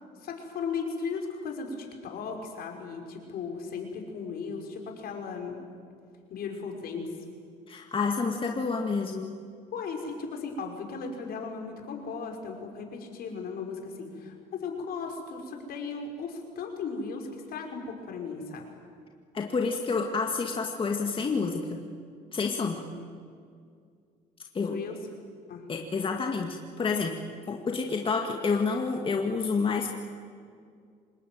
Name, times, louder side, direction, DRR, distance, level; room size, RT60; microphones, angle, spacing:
voice 1, 0.2-5.6 6.3-7.1 9.7-18.7 22.9-23.0 24.6-25.0 25.5-25.7, left 5 dB, 65° left, 3 dB, 5.4 m, -36 dB
voice 2, 7.7-9.3 19.3-21.8 22.3-22.8 24.5-24.8 25.7-27.2 27.5-29.9, left 4 dB, 30° left, 2 dB, 2.0 m, -29 dB
26.0 x 20.5 x 9.5 m, 2.3 s
cardioid pair, 110°, 17 cm